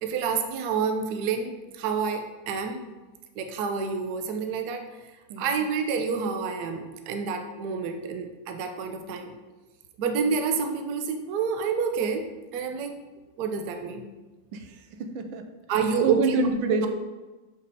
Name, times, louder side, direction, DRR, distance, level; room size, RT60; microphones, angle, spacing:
voice 1, 0.0-2.8 3.4-4.8 5.4-9.3 10.0-12.2 12.5-12.9 13.4-14.1 15.7-16.2 16.7-16.9, right 6 dB, 65° right, 6 dB, 1.1 m, -28 dB
voice 2, 5.3-5.6 14.5-15.4 16.0-16.9, right 3 dB, 80° right, 6 dB, 1.4 m, -27 dB
6.6 x 5.2 x 4.1 m, 1.2 s
omnidirectional pair, 2.2 m